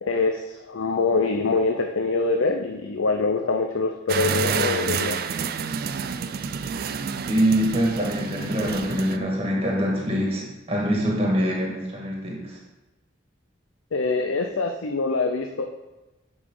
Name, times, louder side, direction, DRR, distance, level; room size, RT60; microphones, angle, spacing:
voice 1, 0.0-5.2 13.9-15.7, left 3 dB, 90° left, 4 dB, 0.6 m, -24 dB
sound 1, 4.1-9.2, right 6 dB, 50° right, 0.4 m, -28 dB
voice 2, 7.3-12.6, equal, 30° right, -2 dB, 1.7 m, -24 dB
9.5 x 5.1 x 3.8 m, 1.0 s
head